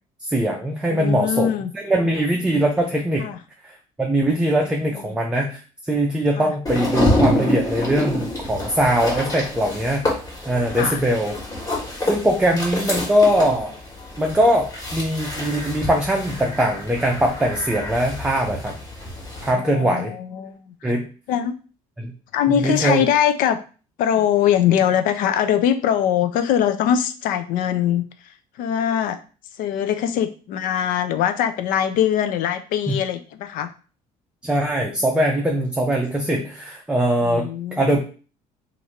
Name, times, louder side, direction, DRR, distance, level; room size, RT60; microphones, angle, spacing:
voice 1, 0.2-3.3 3.6-5.6 5.9-10.0 10.4-11.3 12.0-13.7 14.2-18.8 19.4-20.1 20.8-21.1 22.0-22.1 22.5-23.0 32.9-33.0 34.4-38.0, right 1 dB, 5° right, 1 dB, 0.5 m, -21 dB
voice 2, 0.9-1.7 3.2-3.4 4.9-5.1 6.4-6.5 10.7-11.0 19.5-20.9 21.3-21.5 22.3-23.6 24.0-28.0 28.6-29.2 29.6-33.7 37.2-38.0, left 9 dB, 75° left, 10 dB, 0.5 m, -22 dB
sound 1, 6.7-19.5, left 1 dB, 25° left, 1.6 m, -27 dB
2.9 x 2.5 x 4.3 m, 0.37 s
cardioid pair, 130°, 15 cm